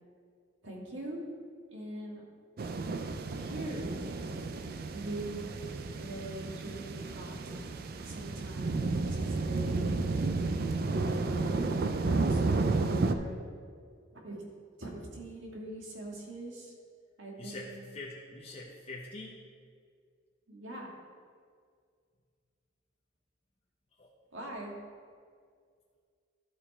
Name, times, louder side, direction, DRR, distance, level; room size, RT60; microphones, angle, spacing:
voice 1, 0.6-1.2 1.7-2.2 3.3-4.6 4.9-5.5 6.0-7.5 8.0-10.3 10.9-11.7 12.0-13.4 14.1-14.4 14.8-16.7 17.2-17.9 20.5-20.9 24.3-24.8, right 1 dB, 85° right, -2 dB, 1.8 m, -42 dB
sound 1, 2.6-13.1, right 3 dB, 50° right, 0.4 m, -32 dB
voice 2, 17.4-19.4 23.9-24.1, left 2 dB, 30° left, -4 dB, 0.8 m, -44 dB
12.5 x 4.5 x 4.3 m, 2.1 s
head